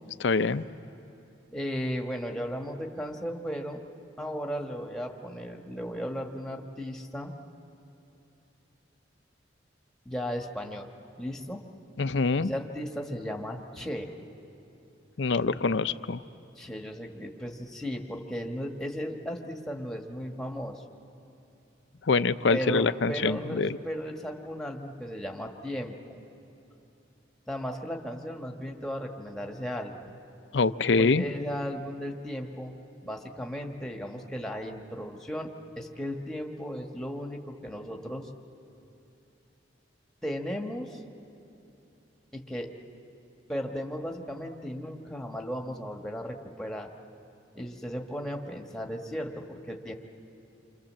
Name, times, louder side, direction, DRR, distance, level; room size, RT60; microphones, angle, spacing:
voice 1, 0.2-0.7 12.0-12.5 15.2-16.2 22.1-23.7 30.5-31.2, left 4 dB, 75° left, 13 dB, 0.6 m, -25 dB
voice 2, 1.5-3.8 4.2-7.3 10.0-10.9 11.2-11.6 12.4-14.1 16.6-20.8 22.5-26.2 27.5-30.2 31.0-38.3 40.2-41.0 42.3-42.7 43.5-46.9 47.5-49.9, equal, 5° left, 2 dB, 1.5 m, -35 dB
28.0 x 25.5 x 7.5 m, 2.9 s
head